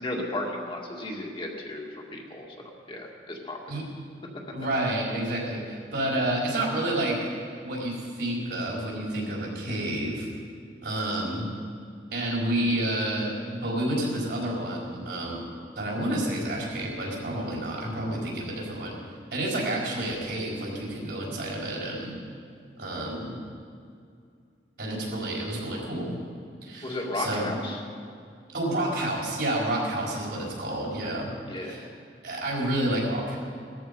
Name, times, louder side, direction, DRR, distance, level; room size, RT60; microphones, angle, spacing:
voice 1, 0.0-3.6 11.1-11.3 26.8-27.8 31.5-31.9, left 1 dB, 30° left, -1 dB, 1.9 m, -34 dB
voice 2, 4.5-7.2 7.6-10.3 10.8-11.4 12.1-15.4 15.8-19.0 19.3-22.2 22.8-23.3 24.8-26.1 26.6-27.5 28.5-31.3 31.6-31.9 32.2-33.4, right 1 dB, 70° right, -3 dB, 4.5 m, -29 dB
18.0 x 13.5 x 5.3 m, 2.3 s
head